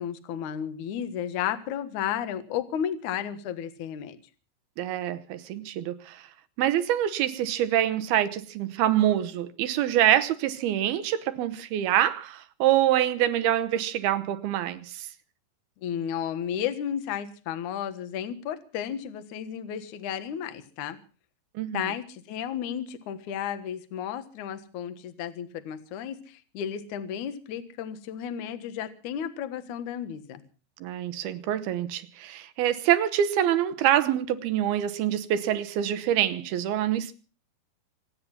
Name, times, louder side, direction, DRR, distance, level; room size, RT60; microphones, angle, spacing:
voice 1, 0.0-4.2 15.8-21.0 21.7-30.4, left 9 dB, 65° left, 2.0 m, -33 dB
voice 2, 4.8-6.3 6.6-15.1 21.6-21.8 30.8-37.1, right 11 dB, 75° right, 2.4 m, -25 dB
25.5 x 9.6 x 5.8 m
omnidirectional pair, 5.4 m